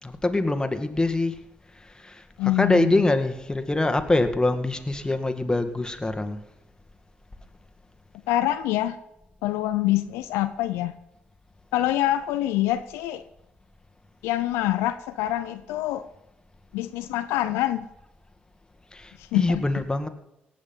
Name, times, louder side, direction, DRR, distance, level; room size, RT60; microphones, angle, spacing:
voice 1, 0.0-1.4 2.0-2.2 2.6-6.4 18.9-20.1, left 2 dB, 15° left, 7 dB, 2.1 m, -24 dB
voice 2, 2.4-3.0 8.3-9.0 9.4-10.9 11.7-13.2 14.2-16.0 16.7-17.9 19.2-19.6, left 14 dB, 85° left, 10 dB, 0.7 m, -25 dB
18.5 x 7.4 x 5.7 m, 0.89 s
hypercardioid pair, 50°, 4 cm